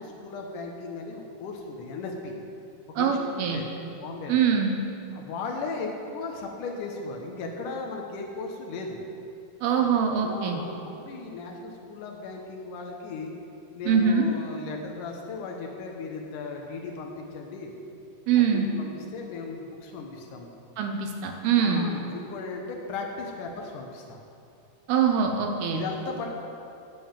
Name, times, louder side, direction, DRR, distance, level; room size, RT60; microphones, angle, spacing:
voice 1, 0.0-2.4 2.9-3.7 4.0-4.4 5.1-9.0 9.7-9.8 10.2-13.3 13.7-17.7 18.4-20.5 21.6-24.2 25.7-26.3, left 4 dB, 85° left, 1 dB, 1.8 m, -36 dB
voice 2, 3.0-3.6 4.3-4.8 9.6-10.6 13.9-14.3 18.3-18.7 20.8-21.9 24.9-25.9, right 7 dB, 75° right, 3 dB, 2.3 m, -23 dB
16.5 x 5.6 x 7.3 m, 2.7 s
omnidirectional pair, 5.3 m